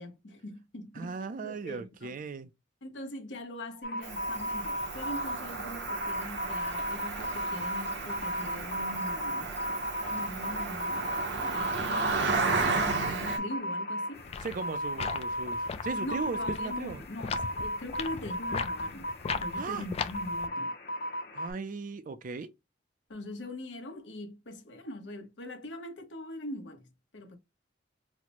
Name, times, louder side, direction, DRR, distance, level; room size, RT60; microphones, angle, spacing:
voice 1, 0.0-1.1 1.4-2.2 2.8-9.5 10.1-14.3 16.0-20.7 23.1-27.4, left 1 dB, 80° left, 0.9 m, -42 dB
voice 2, 0.9-2.5 14.4-17.0 19.5-19.9 21.3-22.5, right 4 dB, 45° right, 0.4 m, -37 dB
sound 1, 3.8-21.5, equal, 65° left, 1.1 m, -36 dB
Cricket, 4.0-13.4, right 4 dB, 65° right, 0.8 m, -33 dB
sound 2, 14.2-20.5, left 5 dB, 35° left, 0.3 m, -38 dB
4.1 x 2.1 x 2.9 m
head